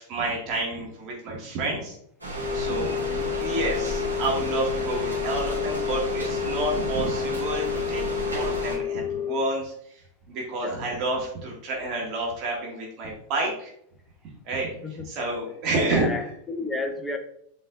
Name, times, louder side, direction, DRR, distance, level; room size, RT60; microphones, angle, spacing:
voice 1, 0.0-1.9 2.5-3.0 3.4-13.7 14.4-14.7 15.1-16.0, right 2 dB, 40° right, -2 dB, 2.2 m, -29 dB
sound 1, 2.2-8.8, right 1 dB, 85° right, 2.6 m, -32 dB
sound 2, 2.4-9.4, left 9 dB, 5° right, 1.5 m, -30 dB
voice 2, 2.9-3.4 10.6-10.8 14.8-15.2 15.8-17.2, left 2 dB, 10° left, 4 dB, 0.9 m, -33 dB
7.8 x 5.4 x 2.6 m, 0.70 s
figure-of-eight pair, 90°, 0 cm